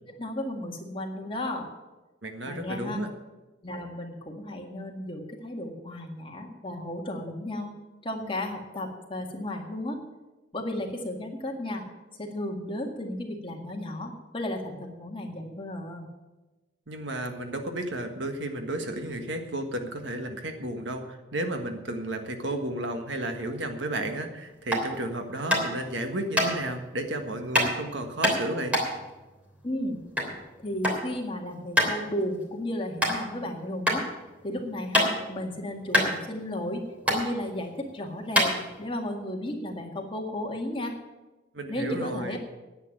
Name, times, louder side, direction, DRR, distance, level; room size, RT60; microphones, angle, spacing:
voice 1, 0.2-1.7 2.5-3.0 3.6-7.7 8.0-10.0 10.5-11.8 12.2-16.1 29.6-30.0 30.6-34.1 34.4-41.0 41.7-42.4, left 1 dB, 30° left, 1 dB, 1.9 m, -34 dB
voice 2, 2.2-3.1 16.9-28.8 41.5-42.4, right 1 dB, 80° right, 5 dB, 1.6 m, -33 dB
sound 1, 24.6-24.9 25.5-25.8 26.3-26.5 27.5-27.7 28.2-30.3 30.6-31.0 31.3-31.4 31.8-32.0 32.4-32.5 33.0-33.1 33.8-34.0 34.4-35.4 35.6-35.7 35.9-36.7 37.0-37.2 37.8-37.9 38.3-39.0, equal, 10° right, 3.2 m, -24 dB
10.0 x 9.0 x 8.9 m, 1.1 s
head